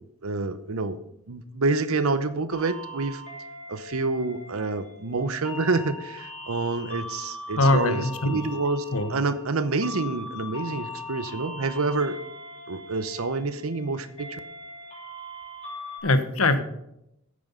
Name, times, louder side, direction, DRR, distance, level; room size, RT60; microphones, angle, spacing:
voice 1, 0.2-1.0 1.3-3.2 3.7-8.8 9.1-12.2 12.7-14.4, right 3 dB, 85° right, 12 dB, 0.8 m, -27 dB
sound 1, 2.5-16.0, left 1 dB, 30° left, 3.0 m, -40 dB
voice 2, 7.6-8.4 8.9-9.1 16.0-16.6, left 2 dB, 85° left, 10 dB, 1.1 m, -22 dB
9.5 x 8.6 x 5.5 m, 0.81 s
head